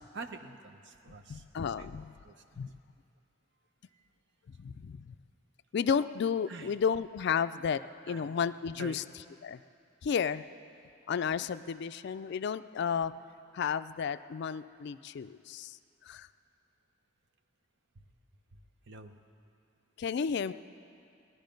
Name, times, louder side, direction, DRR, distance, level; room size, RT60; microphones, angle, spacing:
voice 1, 0.1-1.4 1.8-2.7 3.9-4.0 6.5-6.8 8.1-8.4 8.8-9.0 17.9-18.0 18.9-19.2, right 3 dB, 60° right, 7 dB, 0.8 m, -47 dB
voice 2, 1.3-2.1 2.6-2.7 4.6-5.1 5.7-7.8 8.1-9.0 9.4-9.6 10.0-10.4 11.1-13.1 13.5-15.8 16.1-16.3 20.0-20.5, left 7 dB, 60° left, 13 dB, 0.3 m, -32 dB
18.5 x 11.0 x 5.2 m, 2.5 s
head